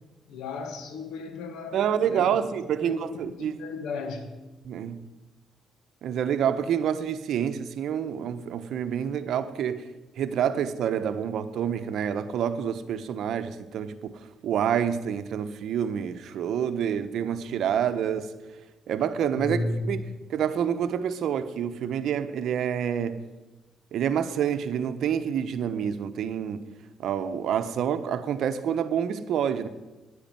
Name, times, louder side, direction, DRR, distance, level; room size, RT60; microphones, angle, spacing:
voice 1, 0.3-2.4 2.8-4.3 19.3-20.0, left 3 dB, 90° left, 1.9 m, -34 dB
voice 2, 1.7-3.5 4.6-5.0 6.0-9.9 10.2-14.1 14.4-18.3 18.9-20.0 20.3-23.2 23.9-26.6 27.0-29.7, right 8 dB, 70° right, 1.0 m, -27 dB
10.5 x 9.9 x 9.0 m
cardioid pair, 90°, 0 cm